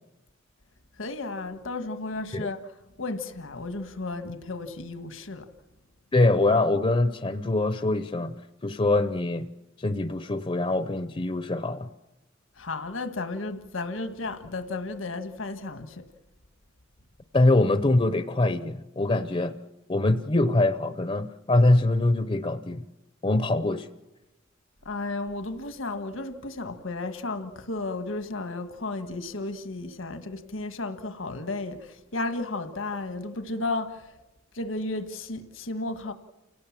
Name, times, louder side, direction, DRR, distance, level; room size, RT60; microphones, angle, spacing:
voice 1, 1.0-2.6 3.0-5.5 12.6-16.1 24.8-34.1 34.5-36.1, left 2 dB, 85° left, 1.6 m, -33 dB
voice 2, 6.1-8.3 8.6-9.5 9.8-11.9 17.3-19.5 19.9-22.8 23.2-23.9, left 2 dB, 30° left, 0.7 m, -23 dB
29.0 x 17.5 x 7.4 m
head